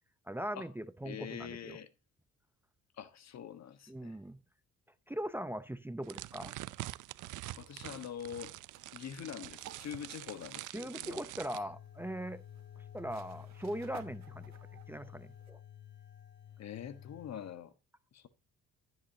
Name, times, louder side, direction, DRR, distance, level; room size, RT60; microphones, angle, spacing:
voice 1, 0.3-1.8 3.9-4.4 5.1-6.5 10.7-12.4 12.9-14.5 14.9-15.6, right 1 dB, 5° right, 0.7 m, -40 dB
voice 2, 1.0-1.9 3.0-4.2 7.5-8.6 8.9-11.3 16.6-17.7 18.1-18.3, left 9 dB, 60° left, 1.4 m, -44 dB
sound 1, 6.0-11.6, right 17 dB, 80° right, 0.6 m, -45 dB
sound 2, 7.4-15.5, right 10 dB, 60° right, 1.3 m, -59 dB
sound 3, 11.6-17.5, left 10 dB, 35° left, 1.2 m, -51 dB
13.0 x 8.2 x 2.8 m
cardioid pair, 90°, 30 cm